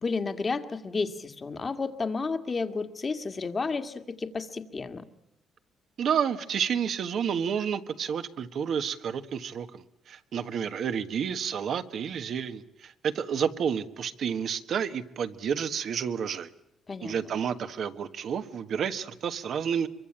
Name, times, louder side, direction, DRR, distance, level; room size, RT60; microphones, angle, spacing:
voice 1, 0.0-5.0 16.9-17.1, left 4 dB, 35° left, 9 dB, 2.0 m, -31 dB
voice 2, 6.0-16.5 17.0-19.9, right 7 dB, 65° right, 10 dB, 1.5 m, -30 dB
24.0 x 23.5 x 8.9 m, 0.82 s
cardioid pair, 90°, 0 cm